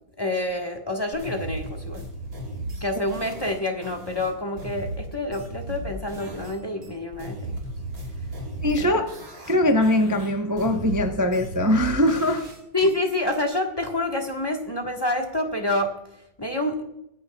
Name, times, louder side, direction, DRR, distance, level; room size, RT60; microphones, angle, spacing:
voice 1, 0.2-2.1 2.8-7.5 8.8-8.9 12.7-15.9 16.4-16.8, left 1 dB, 15° left, 3 dB, 1.2 m, -27 dB
sound 1, 1.1-6.6 6.8-9.6 9.8-12.9, right 1 dB, 85° right, 3.9 m, -35 dB
voice 2, 8.6-9.1 9.5-12.4, left 1 dB, 30° right, 4 dB, 0.3 m, -21 dB
23.5 x 10.5 x 2.3 m, 0.82 s
omnidirectional pair, 2.1 m